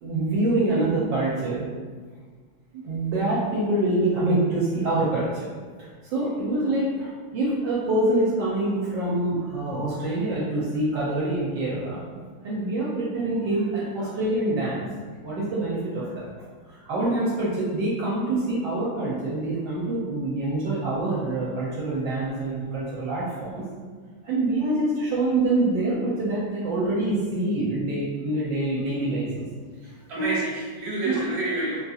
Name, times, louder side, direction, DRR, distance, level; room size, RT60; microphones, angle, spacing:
voice 1, 0.0-1.7 2.7-5.5 5.8-12.0 12.4-14.9 15.2-16.3 16.7-23.7 24.2-29.5 30.2-30.3 31.0-31.2, right 2 dB, 75° right, -6 dB, 1.3 m, -25 dB
voice 2, 29.8-31.8, right 1 dB, 40° right, -8 dB, 1.3 m, -29 dB
3.9 x 2.7 x 2.3 m, 1.5 s
omnidirectional pair, 2.2 m